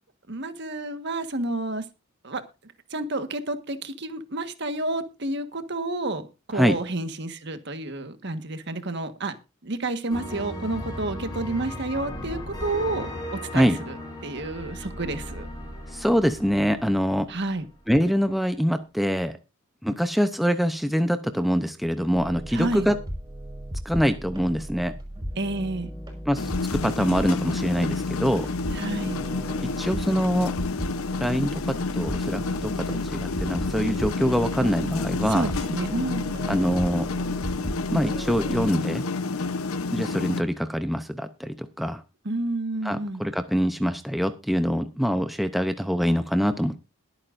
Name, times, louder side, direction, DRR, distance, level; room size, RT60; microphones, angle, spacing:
voice 1, 0.3-1.8 2.2-2.4 2.9-9.3 9.6-13.1 13.5-14.0 14.2-15.5 17.3-17.6 22.5-22.9 25.4-25.9 28.7-29.2 35.3-36.3 42.2-43.2, right 2 dB, 55° right, 1.5 m, -30 dB
sound 1, 10.1-17.7, left 1 dB, 20° left, 5.8 m, -37 dB
voice 2, 15.9-17.3 17.9-19.4 19.8-23.0 23.8-24.9 26.3-28.5 29.6-30.5 31.2-35.5 36.5-37.1 37.9-39.0 39.9-42.0 42.8-46.9, equal, ahead, 0.6 m, -24 dB
sound 2, 22.1-38.7, equal, 20° right, 5.7 m, -36 dB
sound 3, 26.3-40.4, left 3 dB, 90° left, 0.8 m, -29 dB
21.5 x 8.8 x 2.6 m
head